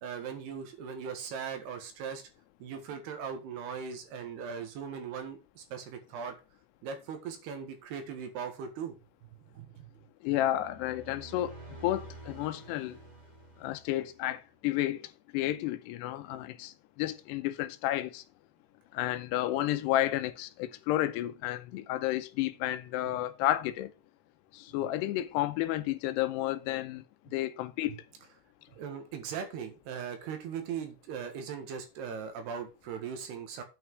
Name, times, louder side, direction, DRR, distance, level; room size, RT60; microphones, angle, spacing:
voice 1, 0.0-2.2 2.6-6.4 6.8-9.0 9.2-9.9 27.9-28.0 28.7-33.6, right 7 dB, 75° right, 3.5 m, -39 dB
voice 2, 10.2-11.5 11.8-13.0 13.6-18.2 18.9-23.9 24.5-27.0 27.3-28.0, left 14 dB, 80° left, 2.7 m, -31 dB
sound 1, 10.4-14.3, right 2 dB, 15° right, 1.4 m, -49 dB
8.9 x 5.9 x 4.7 m
omnidirectional pair, 4.9 m